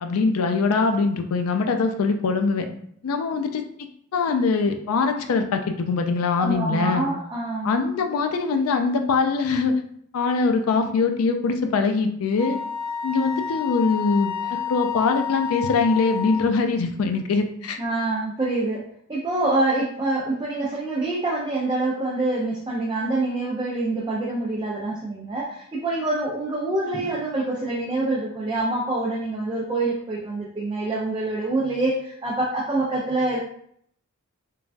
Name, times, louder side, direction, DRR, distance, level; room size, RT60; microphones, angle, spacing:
voice 1, 0.0-2.7 3.0-3.6 4.1-7.1 7.6-9.8 10.1-12.6 13.0-14.3 14.7-17.8, left 4 dB, 70° left, 6 dB, 0.4 m, -22 dB
voice 2, 6.4-7.7 14.4-14.6 17.8-18.8 19.1-33.4, right 2 dB, 20° right, -4 dB, 0.4 m, -26 dB
Wind instrument woodwind instrument, 12.4-16.6, left 7 dB, 30° left, 0.8 m, -30 dB
3.2 x 2.2 x 2.5 m, 0.66 s
head